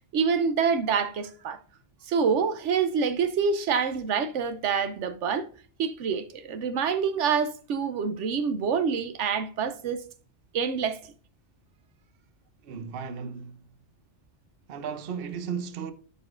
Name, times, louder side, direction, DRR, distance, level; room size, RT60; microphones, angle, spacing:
voice 1, 0.1-1.6 2.1-5.5 5.8-10.0 10.5-11.0, right 6 dB, 85° right, 1.0 m, -26 dB
voice 2, 12.6-13.7 14.7-15.9, right 6 dB, 55° right, 0.9 m, -35 dB
11.0 x 5.0 x 2.5 m
omnidirectional pair, 1.2 m